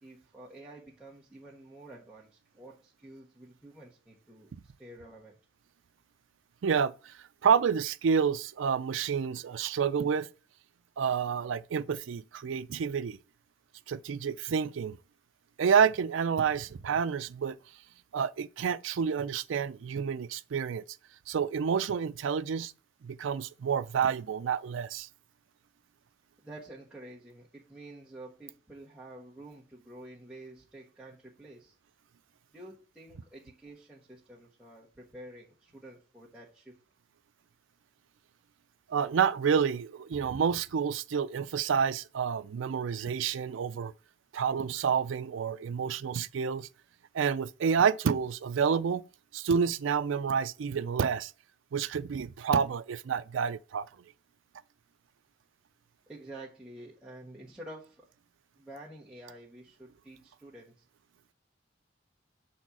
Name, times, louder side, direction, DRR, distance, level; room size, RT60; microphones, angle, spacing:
voice 1, 0.0-4.5 4.8-5.4 26.4-31.8 32.5-36.8 56.1-58.1 58.6-60.8, right 1 dB, 5° right, 1.2 m, -49 dB
voice 2, 6.6-7.1 7.4-10.3 11.0-13.2 13.9-15.0 15.6-17.6 18.1-20.8 21.3-22.7 23.0-25.1 38.9-43.9 44.3-46.7 47.1-49.0 49.3-51.3 51.7-53.9, right 6 dB, 85° right, 0.4 m, -29 dB
7.0 x 4.3 x 6.0 m
head